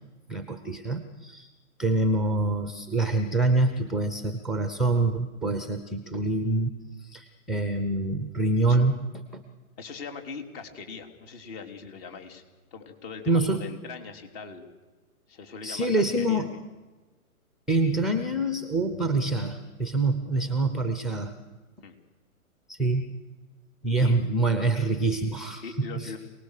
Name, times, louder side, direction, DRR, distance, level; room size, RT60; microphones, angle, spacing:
voice 1, 0.3-1.5 1.8-9.0 9.3-9.4 13.3-13.7 15.6-16.5 17.7-21.3 22.7-23.2 23.8-26.1, right 2 dB, ahead, 8 dB, 0.7 m, -26 dB
voice 2, 9.8-12.4 12.7-14.7 15.3-16.6 20.2-20.6 21.8-22.0 23.9-24.1 25.6-26.2, left 5 dB, 40° left, 5 dB, 3.6 m, -41 dB
27.5 x 19.0 x 6.7 m, 1.2 s
hypercardioid pair, 135°, 43 cm